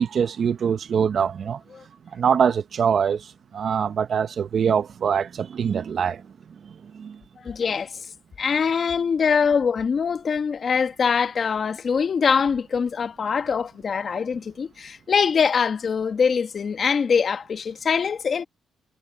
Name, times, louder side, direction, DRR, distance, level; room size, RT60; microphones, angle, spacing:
voice 1, 0.0-1.6 2.1-6.2 6.6-7.2, right 7 dB, 55° right, 1.0 m, -24 dB
voice 2, 7.4-8.1 8.4-18.4, left 6 dB, 45° left, 1.8 m, -23 dB
cardioid pair, 90°, 0 cm